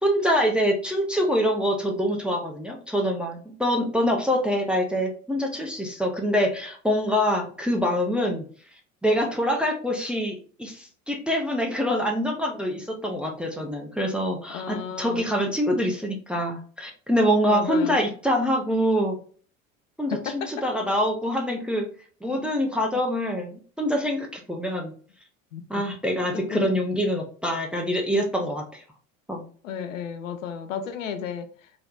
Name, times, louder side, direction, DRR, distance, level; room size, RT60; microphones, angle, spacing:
voice 1, 0.0-8.4 9.0-19.2 20.0-21.9 22.2-24.9 25.7-28.8 29.3-29.4, equal, 5° right, 0.5 m, -25 dB
voice 2, 14.5-15.3 17.5-18.0 20.1-20.5 25.5-25.8 26.3-26.9 29.6-31.5, left 7 dB, 70° left, 0.7 m, -33 dB
3.2 x 3.0 x 2.4 m
figure-of-eight pair, 70°, 40 cm